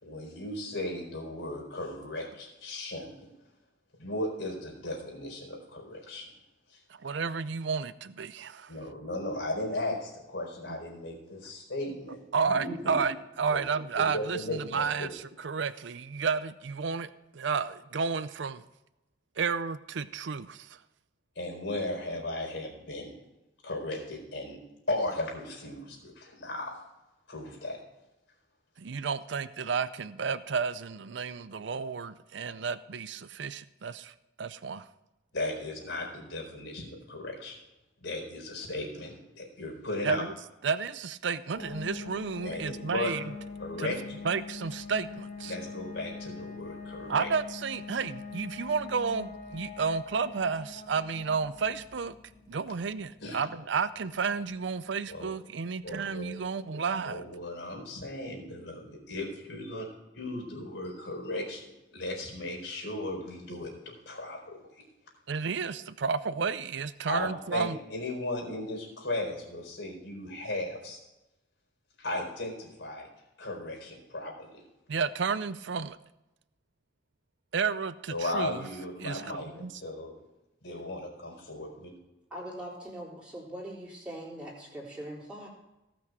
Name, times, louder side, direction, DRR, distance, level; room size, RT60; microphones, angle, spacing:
voice 1, 0.0-3.3 4.0-6.3 6.7-6.8 8.7-13.0 13.5-13.6 14.0-15.1 21.4-23.2 23.6-24.6 24.9-26.8 27.3-27.8 35.3-37.6 38.0-40.2 42.4-43.1 43.6-44.3 45.4-47.3 53.2-53.4 55.1-55.3 55.8-56.3 56.7-59.9 60.1-61.6 61.9-64.6 67.1-71.0 72.0-73.1 73.4-74.6 78.1-80.1 80.6-81.9, left 1 dB, 70° left, 1 dB, 4.4 m, -36 dB
voice 2, 7.0-8.7 12.3-18.6 19.4-20.7 28.8-34.9 40.0-40.3 40.6-43.2 43.8-43.9 44.2-45.5 47.1-52.1 52.5-57.2 59.7-59.9 65.3-67.8 74.9-76.0 77.5-78.6 79.0-79.3 79.6-79.7, right 5 dB, 70° right, 15 dB, 0.5 m, -32 dB
sound 1, 41.6-56.1, left 4 dB, 35° left, 1.2 m, -44 dB
voice 3, 82.3-85.5, right 1 dB, 5° right, -5 dB, 3.8 m, -41 dB
18.0 x 6.2 x 4.8 m, 0.96 s
head